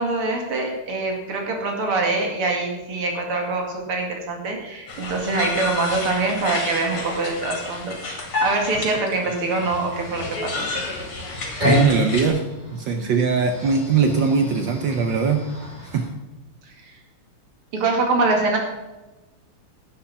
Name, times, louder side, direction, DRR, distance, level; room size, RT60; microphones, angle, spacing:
voice 1, 0.0-8.0 8.4-10.7 16.8-16.9 17.7-18.6, right 3 dB, 80° right, 2 dB, 3.1 m, -24 dB
sound 1, 4.9-12.3, left 3 dB, 80° left, 3.3 m, -31 dB
sound 2, 9.6-16.1, right 1 dB, 20° right, 4.7 m, -28 dB
voice 2, 11.6-12.4 12.7-15.4 15.9-16.1, right 5 dB, 65° right, 5 dB, 1.5 m, -21 dB
11.5 x 8.5 x 5.8 m, 1.1 s
omnidirectional pair, 2.4 m